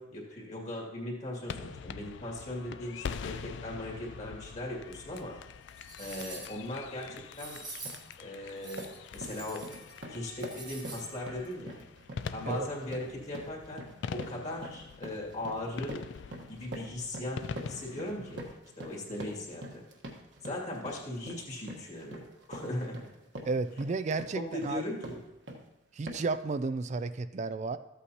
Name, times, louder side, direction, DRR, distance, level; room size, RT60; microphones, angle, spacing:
voice 1, 0.0-5.4 6.0-7.6 8.2-9.7 10.1-11.7 12.3-13.8 14.1-16.0 16.5-18.5 18.8-19.8 20.4-23.1 24.3-25.2, left 1 dB, 35° left, -3 dB, 2.3 m, -38 dB
sound 1, 1.5-18.6, left 6 dB, 60° left, 0.3 m, -44 dB
sound 2, 5.1-5.2 5.7-6.7 7.3-8.1 8.6-10.0 10.2-11.1 11.4-11.5, right 3 dB, 20° right, 1.3 m, -46 dB
sound 3, 7.1-7.3 7.7-8.1 8.4-25.7 26.1-26.4, right 1 dB, 60° right, 1.3 m, -45 dB
voice 2, 23.5-24.9 25.9-27.8, right 3 dB, 35° right, 12 dB, 0.3 m, -32 dB
14.0 x 8.2 x 2.8 m, 0.98 s
head